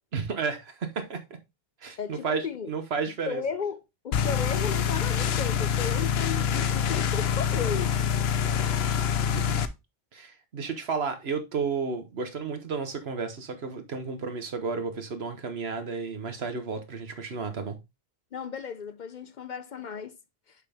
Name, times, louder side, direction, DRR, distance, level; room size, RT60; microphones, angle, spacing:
voice 1, 0.1-1.2 1.8-3.4 9.3-9.6 10.1-17.8, right 5 dB, 80° right, 1.4 m, -32 dB
voice 2, 2.0-2.7 3.3-7.9 18.3-20.1, left 6 dB, 55° left, 0.7 m, -35 dB
sound 1, 4.1-9.7, left 8 dB, 80° left, 0.9 m, -26 dB
6.7 x 5.2 x 3.4 m
omnidirectional pair, 1.0 m